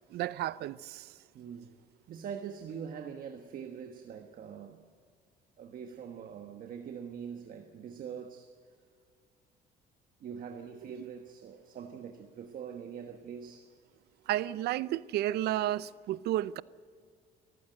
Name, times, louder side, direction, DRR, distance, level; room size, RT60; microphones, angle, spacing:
voice 1, 0.1-1.1 10.8-10.9 14.3-16.6, right 13 dB, 75° right, 0.6 m, -32 dB
voice 2, 1.3-1.7 2.1-4.8 5.6-8.6 10.2-13.7, right 7 dB, 55° right, 1.4 m, -43 dB
23.5 x 15.0 x 7.8 m
cardioid pair, 110°, 17 cm